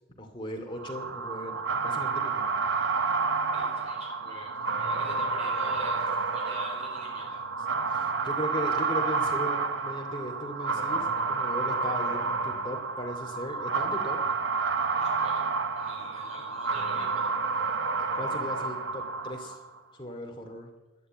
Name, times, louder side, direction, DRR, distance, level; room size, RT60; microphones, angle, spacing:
voice 1, 0.2-2.5 7.9-14.2 18.0-19.6 19.9-20.7, left 1 dB, 25° left, 2 dB, 2.6 m, -38 dB
sound 1, 0.8-19.7, right 4 dB, 65° right, 1.1 m, -30 dB
voice 2, 3.5-7.4 14.9-15.5 15.7-17.3, equal, 35° right, 0 dB, 4.8 m, -46 dB
12.0 x 11.5 x 9.1 m, 1.1 s
head